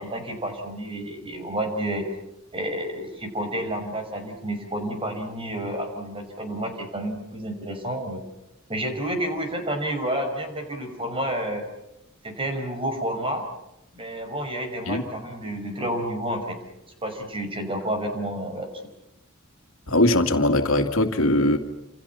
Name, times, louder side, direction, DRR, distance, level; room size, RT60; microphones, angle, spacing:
voice 1, 0.0-2.1 2.5-8.2 8.7-11.6 12.2-13.5 13.9-16.6 17.0-18.7, right 1 dB, 25° right, 5 dB, 5.8 m, -30 dB
voice 2, 19.9-21.6, left 1 dB, 75° left, 5 dB, 2.6 m, -20 dB
29.5 x 28.0 x 5.9 m, 0.88 s
head